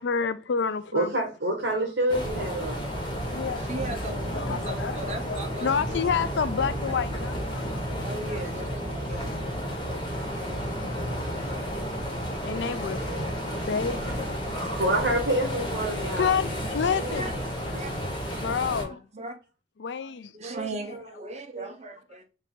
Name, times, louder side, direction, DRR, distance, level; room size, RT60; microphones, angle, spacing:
voice 1, 0.0-1.1 3.3-4.0 4.3-8.4 11.5-11.9 12.4-13.0 13.7-14.3 15.9-17.3 18.4-19.1 19.8-20.3, left 6 dB, 80° left, 0.4 m, -29 dB
voice 2, 0.9-2.9 14.5-16.4, right 1 dB, 70° right, 1.1 m, -27 dB
sound 1, 2.1-18.8, equal, 25° left, 1.3 m, -32 dB
voice 3, 3.7-6.3 8.0-9.3 9.6-10.0 12.4-13.5 16.9-17.3 17.7-17.9 18.8-19.4 20.3-22.2, right 2 dB, 40° right, 0.7 m, -38 dB
4.2 x 2.6 x 3.6 m
head